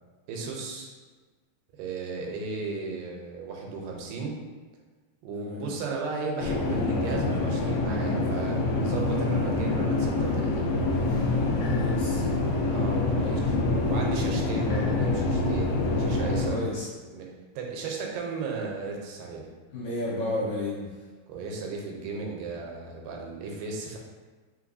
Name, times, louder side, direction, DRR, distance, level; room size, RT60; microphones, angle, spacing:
voice 1, 0.3-0.9 1.8-4.4 5.2-10.8 12.7-13.4 13.9-16.8 17.1-17.3 17.6-19.5 21.3-24.0, right 4 dB, 85° right, 0 dB, 2.3 m, -35 dB
voice 2, 5.3-5.7 11.6-12.3 13.2-13.5 16.4-16.9 19.7-20.9, left 2 dB, 65° left, -8 dB, 2.2 m, -33 dB
sound 1, 6.4-16.5, left 2 dB, 80° left, 1.6 m, -26 dB
5.2 x 3.3 x 2.5 m, 1.4 s
omnidirectional pair, 3.9 m